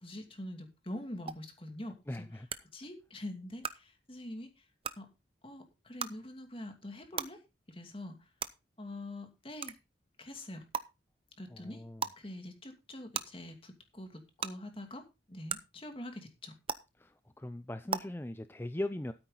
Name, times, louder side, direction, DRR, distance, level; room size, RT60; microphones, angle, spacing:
voice 1, 0.0-2.3 2.7-4.5 5.0-5.1 5.4-7.4 7.7-8.2 8.8-9.8 10.2-10.6 11.4-11.8 12.2-15.0 15.3-16.5, left 1 dB, 30° left, 5 dB, 2.6 m, -44 dB
sound 1, 1.3-1.4 2.5-2.6 3.6-3.7 4.8-4.9 6.0-6.1 7.2-7.3 8.4-8.5 9.6-9.7 10.7-10.8 12.0-12.1 13.1-13.2 14.4-14.5 15.5-15.6 16.7-16.8 17.9-18.0, right 6 dB, 30° right, 0.7 m, -34 dB
voice 2, 2.1-2.5 11.5-12.1 17.0-19.1, left 1 dB, 10° left, 11 dB, 0.5 m, -40 dB
13.0 x 8.9 x 4.0 m, 0.26 s
head